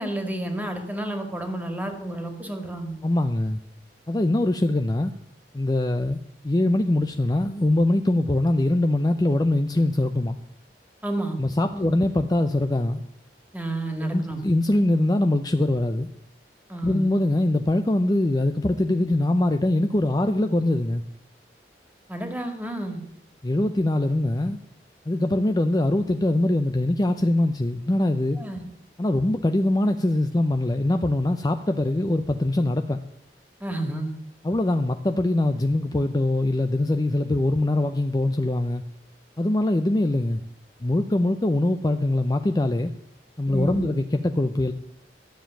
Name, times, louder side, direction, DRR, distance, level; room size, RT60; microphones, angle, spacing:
voice 1, 0.0-3.0 11.0-11.4 11.7-11.9 13.5-14.4 16.7-17.1 22.1-23.0 28.4-28.6 33.6-34.1 43.5-44.0, right 1 dB, 10° right, 5 dB, 2.0 m, -30 dB
voice 2, 3.0-3.6 4.1-5.1 5.5-6.2 6.4-10.4 11.4-13.0 14.0-16.1 16.8-21.0 23.4-24.6 25.1-28.4 29.0-33.0 34.4-38.8 39.4-40.4 40.8-42.9 43.4-44.7, left 1 dB, 20° left, 7 dB, 0.5 m, -23 dB
13.0 x 7.3 x 9.0 m, 0.77 s
head